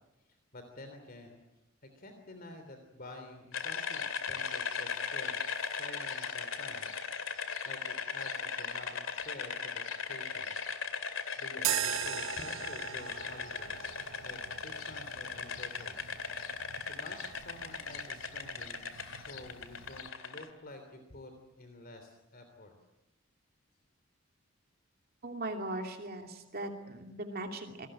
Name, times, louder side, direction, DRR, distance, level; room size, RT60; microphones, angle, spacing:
voice 1, 0.5-1.4 1.8-7.0 7.6-10.6 11.4-16.2 16.8-22.7, left 1 dB, 45° left, 6 dB, 3.3 m, -50 dB
sound 1, 3.5-20.5, left 5 dB, 80° left, 2.4 m, -38 dB
sound 2, 11.6-20.1, right 10 dB, 75° right, 0.8 m, -40 dB
voice 2, 25.2-27.9, right 2 dB, 50° right, 4 dB, 2.7 m, -39 dB
27.5 x 20.0 x 9.0 m, 0.98 s
head